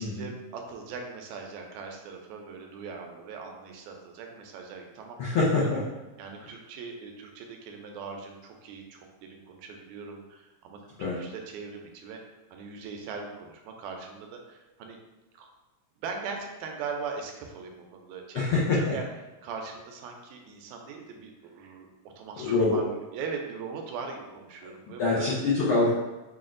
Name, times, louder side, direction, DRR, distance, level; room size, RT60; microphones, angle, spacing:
voice 1, 0.0-5.7 6.2-12.2 12.5-15.0 15.3-15.5 16.0-19.0 19.4-21.9 22.2-25.3, right 5 dB, 80° right, 2 dB, 1.9 m, -40 dB
voice 2, 5.2-5.8 11.0-11.2 18.3-19.0 22.4-22.8 25.0-25.9, left 3 dB, 90° left, -7 dB, 1.1 m, -25 dB
5.7 x 2.3 x 2.5 m, 1.1 s
omnidirectional pair, 3.4 m